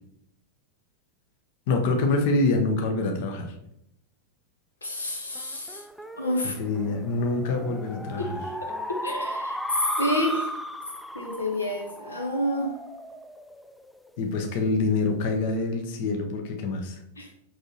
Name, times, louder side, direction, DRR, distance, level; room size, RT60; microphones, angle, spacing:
voice 1, 1.7-3.5 6.4-8.4 14.2-17.0, left 3 dB, 50° left, 3 dB, 0.9 m, -26 dB
voice 2, 4.8-5.8 6.2-6.5 8.2-8.3 8.7-9.6 10.0-10.5 11.1-12.7 17.2-17.3, left 1 dB, 75° left, 2 dB, 0.9 m, -29 dB
sound 1, 5.3-14.2, equal, ahead, 0.4 m, -35 dB
6.3 x 5.9 x 2.9 m, 0.78 s
figure-of-eight pair, 90°, 0 cm